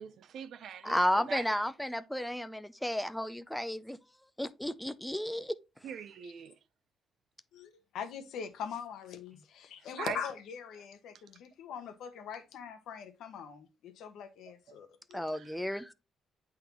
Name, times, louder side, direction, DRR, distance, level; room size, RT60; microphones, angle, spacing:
voice 1, 0.0-1.5 5.8-6.5 10.0-10.2 15.3-15.6, right 8 dB, 70° right, 0.6 m, -42 dB
voice 2, 0.8-4.0 4.4-5.6 15.1-15.9, left 1 dB, 5° left, 0.5 m, -33 dB
voice 3, 7.5-15.3, left 7 dB, 80° left, 1.1 m, -42 dB
8.6 x 3.8 x 3.0 m
cardioid pair, 90°, 0 cm